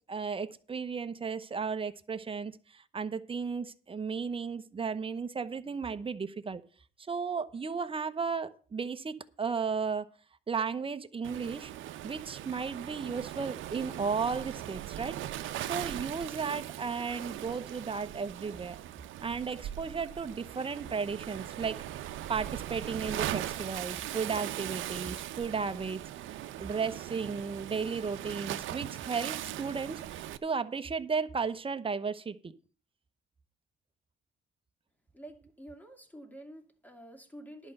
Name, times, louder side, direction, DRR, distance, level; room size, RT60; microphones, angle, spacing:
voice 1, 0.1-6.6 7.0-10.1 10.5-11.7 12.0-15.2 15.6-18.8 19.2-21.8 22.3-26.0 26.6-32.5, right 5 dB, 25° right, 10 dB, 0.9 m, -34 dB
Waves surf, 11.2-30.4, right 13 dB, 80° right, 0.7 m, -40 dB
voice 2, 35.1-37.7, right 1 dB, 10° left, 5 dB, 2.4 m, -49 dB
11.0 x 5.4 x 7.8 m, 0.42 s
cardioid pair, 90°, 20 cm